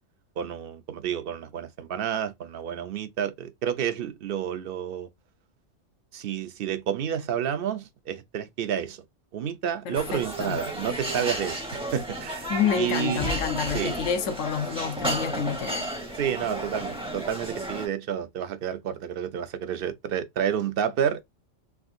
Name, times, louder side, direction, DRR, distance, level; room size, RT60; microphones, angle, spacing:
voice 1, 0.4-5.1 6.1-9.0 9.3-13.3 13.7-14.0 16.1-21.2, right 9 dB, 60° right, 0.6 m, -30 dB
voice 2, 9.9-10.6 12.5-15.9, left 7 dB, 85° left, 1.1 m, -28 dB
sound 1, 9.9-17.9, right 1 dB, 5° right, 0.6 m, -33 dB
3.5 x 2.4 x 2.5 m
omnidirectional pair, 1.3 m